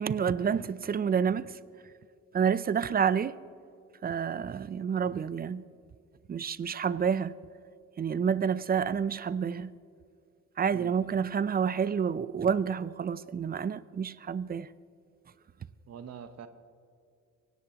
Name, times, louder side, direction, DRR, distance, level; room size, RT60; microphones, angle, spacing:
voice 1, 0.0-1.6 2.3-3.4 4.0-5.6 6.3-7.3 8.0-9.8 10.6-14.7, right 7 dB, 30° right, 0.5 m, -29 dB
voice 2, 10.7-11.1 15.9-16.5, right 7 dB, 60° right, 1.2 m, -45 dB
23.5 x 17.5 x 2.9 m
cardioid pair, 90°, 30 cm